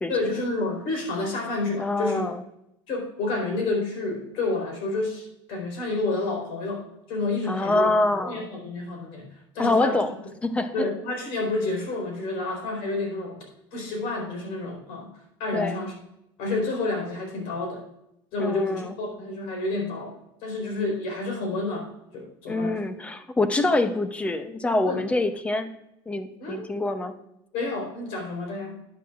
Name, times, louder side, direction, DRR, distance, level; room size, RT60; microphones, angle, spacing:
voice 1, 0.1-2.2 2.9-9.3 9.5-10.0 10.7-13.4 13.7-15.1 15.4-15.9 16.4-17.8 18.3-20.2 20.4-22.8 24.9-25.0 26.4-26.6 27.5-28.8, left 2 dB, 60° left, 2 dB, 4.2 m, -29 dB
voice 2, 1.8-2.4 7.5-8.5 9.6-10.1 10.4-10.9 15.5-15.8 18.4-18.9 22.5-25.7 26.1-27.1, left 2 dB, 10° left, 10 dB, 0.7 m, -25 dB
13.0 x 9.6 x 2.5 m, 0.83 s
cardioid pair, 160°, 11 cm